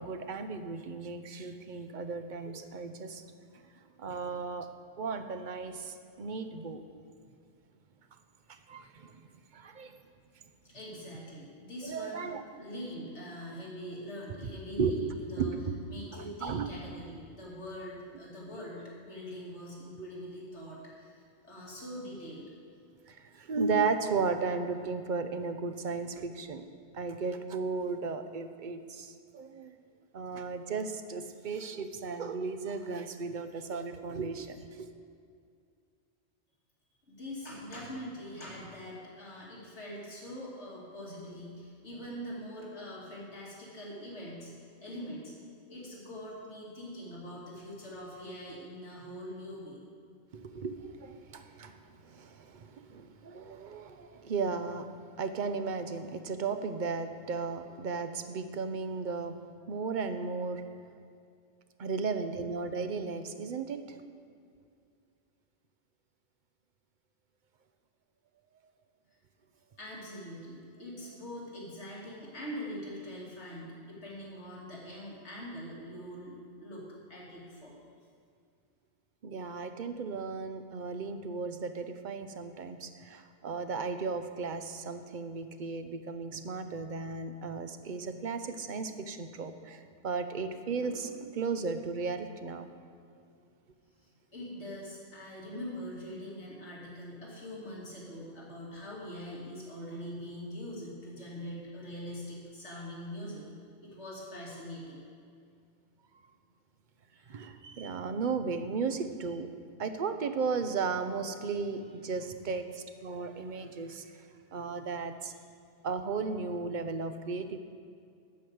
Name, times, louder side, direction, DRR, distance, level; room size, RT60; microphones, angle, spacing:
voice 1, 0.0-3.2 4.0-4.7 5.0-6.8 8.5-9.2 9.5-9.9 11.8-12.4 14.8-15.0 15.3-15.7 16.1-16.7 20.0-20.1 23.1-26.7 26.9-29.7 30.1-34.9 50.3-54.9 55.2-60.6 61.8-64.0 79.2-92.7 107.3-109.5 109.8-114.0 114.5-115.3 115.8-117.6, right 4 dB, 50° right, 8 dB, 0.8 m, -35 dB
voice 2, 10.6-15.6 15.9-22.5 37.1-45.3 45.7-49.8 69.8-77.8 94.3-103.5 103.8-105.0 107.1-107.4 115.3-115.4, equal, 75° left, -5 dB, 2.5 m, -43 dB
12.5 x 5.2 x 7.9 m, 2.3 s
omnidirectional pair, 1.2 m